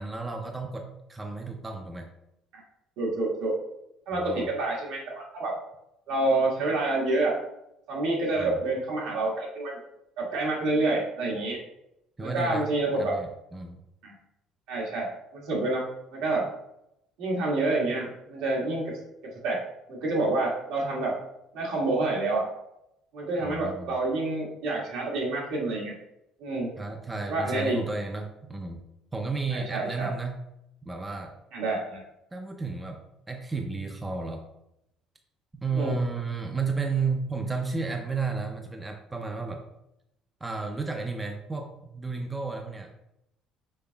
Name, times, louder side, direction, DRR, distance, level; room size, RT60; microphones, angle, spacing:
voice 1, 0.0-2.1 4.1-4.5 8.4-8.6 12.2-12.7 13.0-13.8 23.4-24.0 26.8-28.8 29.1-30.4 30.8-31.4 32.3-34.4 35.6-39.6 40.4-42.9, right 4 dB, 15° right, 3 dB, 0.4 m, -32 dB
voice 2, 3.0-3.5 4.1-5.5 6.1-7.3 7.9-9.8 10.2-11.6 12.2-13.1 14.0-14.1 14.7-16.5 17.2-18.8 19.4-19.6 19.9-21.1 21.5-22.4 23.1-25.9 26.4-26.7 27.3-27.8 29.5-30.1 31.5-32.0 35.7-35.9, right 2 dB, 80° right, -3 dB, 1.6 m, -28 dB
5.4 x 3.7 x 2.3 m, 0.83 s
cardioid pair, 140°, 0 cm